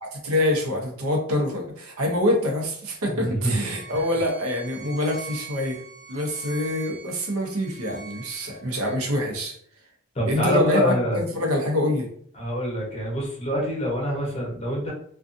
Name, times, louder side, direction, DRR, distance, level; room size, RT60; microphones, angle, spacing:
voice 1, 0.0-5.8 6.1-9.6 10.3-12.1, left 1 dB, 85° right, 1 dB, 0.7 m, -25 dB
voice 2, 3.2-3.5 3.9-4.0 10.1-11.2 12.4-14.9, equal, 30° left, -3 dB, 0.8 m, -25 dB
Bowed string instrument, 3.5-8.9, right 5 dB, 20° right, 0.5 m, -43 dB
2.5 x 2.3 x 2.5 m, 0.62 s
head